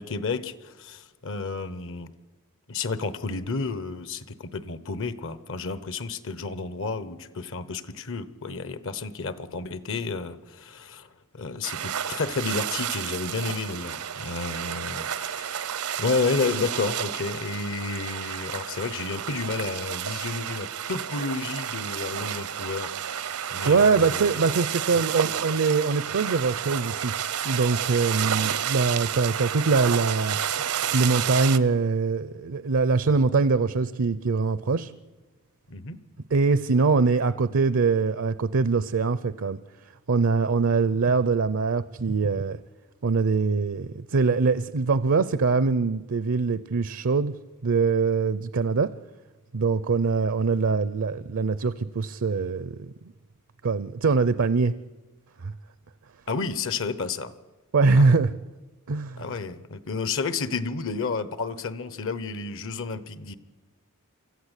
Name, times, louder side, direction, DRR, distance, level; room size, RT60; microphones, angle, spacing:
voice 1, 0.0-2.1 2.7-15.6 16.0-24.4 24.9-25.0 35.7-36.0 56.3-57.3 58.0-58.1 59.2-63.3, left 4 dB, 60° left, 14 dB, 1.0 m, -31 dB
sound 1, 11.6-31.6, right 9 dB, 80° right, 0.9 m, -31 dB
voice 2, 23.3-27.1 27.4-30.4 30.9-34.9 36.3-39.6 40.1-42.6 43.0-47.3 47.6-48.9 49.5-52.9 53.6-54.7 55.4-55.5 57.7-58.3 58.9-59.2, right 4 dB, 60° right, 15 dB, 0.6 m, -23 dB
24.5 x 14.0 x 8.2 m, 1.2 s
head